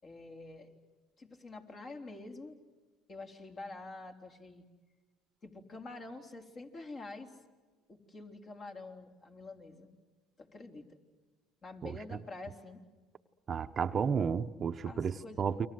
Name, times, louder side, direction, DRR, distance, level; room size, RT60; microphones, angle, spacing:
voice 1, 0.0-0.8 1.2-2.6 3.1-4.6 5.4-7.3 7.9-9.9 10.4-11.0 11.6-12.8 14.8-15.5, left 2 dB, 35° left, 3 dB, 3.8 m, -47 dB
voice 2, 13.5-15.7, right 6 dB, 35° right, 8 dB, 0.9 m, -32 dB
29.5 x 24.0 x 7.9 m, 1.4 s
supercardioid pair, 90°, 0 cm